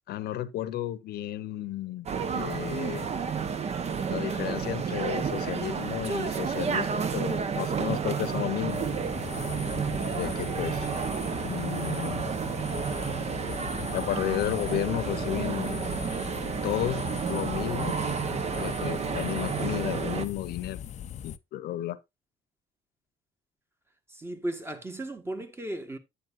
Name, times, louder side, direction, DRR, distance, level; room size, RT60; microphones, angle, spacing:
voice 1, 0.1-2.1 2.3-3.1 4.1-8.9 10.1-10.9 11.5-12.2 13.9-15.8 16.6-18.0 18.5-20.8 21.2-22.0, left 13 dB, 70° left, 0.9 m, -33 dB
sound 1, 2.1-20.3, right 6 dB, 40° right, 0.9 m, -31 dB
sound 2, 8.7-21.4, left 9 dB, 45° left, 0.5 m, -39 dB
voice 2, 24.1-26.0, right 1 dB, 15° right, 1.5 m, -35 dB
9.3 x 8.3 x 2.5 m
cardioid pair, 110°, 17 cm